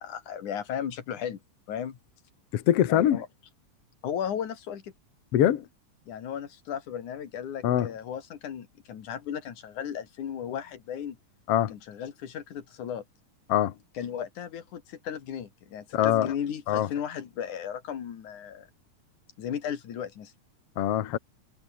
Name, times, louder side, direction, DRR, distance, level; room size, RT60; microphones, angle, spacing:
voice 1, 0.0-1.4 1.7-2.0 2.9-3.3 4.0-4.9 6.1-11.2 11.7-13.0 14.0-18.7 19.4-20.3, left 8 dB, 85° left, 3.7 m, -35 dB
voice 2, 2.5-3.2 5.3-5.7 7.6-7.9 11.5-11.8 13.5-13.7 15.9-16.4 16.7-16.9 20.8-21.2, left 11 dB, 60° left, 2.2 m, -23 dB
omnidirectional pair, 3.4 m